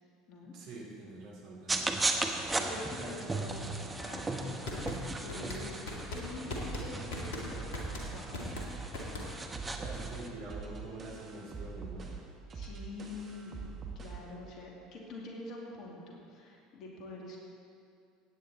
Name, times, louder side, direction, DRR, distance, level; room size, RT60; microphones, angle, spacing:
voice 1, 0.5-2.0 2.9-3.1 9.7-12.1, right 2 dB, 60° right, -3 dB, 3.1 m, -45 dB
sound 1, 1.7-10.3, right 2 dB, 15° right, 1.2 m, -37 dB
voice 2, 2.5-5.0 5.2-5.8 6.1-7.7 8.0-8.4 12.5-17.4, left 2 dB, 50° left, -2 dB, 2.5 m, -46 dB
sound 2, 4.6-9.6, left 2 dB, 65° left, 2.2 m, -40 dB
sound 3, 6.5-14.3, right 4 dB, 35° right, 2.0 m, -44 dB
16.5 x 9.5 x 4.2 m, 2.4 s
figure-of-eight pair, 70°, 0 cm